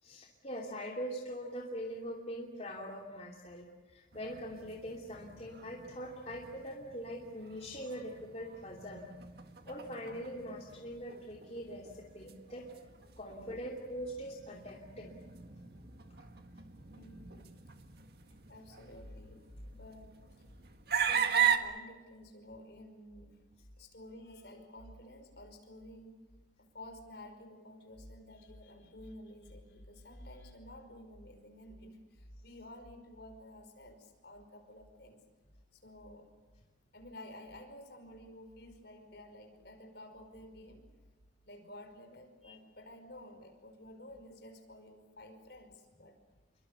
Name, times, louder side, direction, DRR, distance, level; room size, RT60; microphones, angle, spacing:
voice 1, 0.0-9.1 9.7-12.7 13.2-15.1 42.4-42.5, equal, 35° left, -1 dB, 2.8 m, -42 dB
sound 1, 4.1-21.6, right 8 dB, 50° right, 1.9 m, -39 dB
voice 2, 16.9-17.5 18.5-20.2 21.0-23.4 23.8-26.2 26.6-35.2 35.7-36.3 36.9-40.9 41.5-46.2, left 1 dB, 55° left, 6 dB, 5.4 m, -51 dB
28.5 x 24.0 x 6.9 m, 1.3 s
head